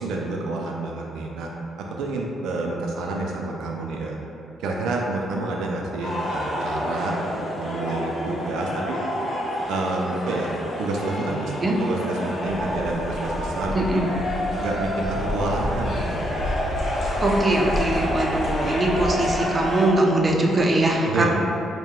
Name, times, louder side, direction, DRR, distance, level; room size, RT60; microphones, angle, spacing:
voice 1, 0.0-1.5 1.8-4.2 4.6-9.0 9.7-10.5 10.8-11.5 11.8-14.0 14.6-16.3 21.0-21.3, right 2 dB, 85° right, -1 dB, 0.4 m, -28 dB
sound 1, 6.0-19.9, left 1 dB, 60° left, 1.1 m, -29 dB
Waves surf, 12.5-19.8, left 1 dB, 10° right, 0.9 m, -31 dB
voice 2, 13.7-14.0 17.2-21.3, right 1 dB, 30° right, 0 dB, 0.5 m, -21 dB
4.5 x 2.2 x 3.5 m, 2.8 s
cardioid pair, 90°, 0 cm